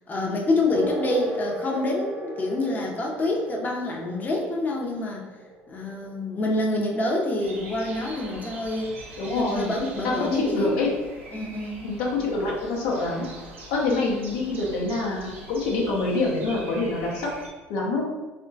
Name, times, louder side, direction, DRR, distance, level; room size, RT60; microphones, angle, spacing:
voice 1, 0.1-5.2 5.7-8.9 9.3-10.8 11.3-11.9, left 2 dB, 25° left, -2 dB, 0.6 m, -27 dB
sound 1, 0.7-8.8, equal, 10° right, 0.6 m, -37 dB
sound 2, 7.4-17.5, right 2 dB, 85° right, 0.6 m, -43 dB
voice 2, 9.2-9.7 10.0-10.9 11.8-13.3 13.7-17.3 17.7-18.1, left 3 dB, 70° left, -2 dB, 0.6 m, -26 dB
3.5 x 2.2 x 2.6 m, 1.2 s
hypercardioid pair, 65°, 7 cm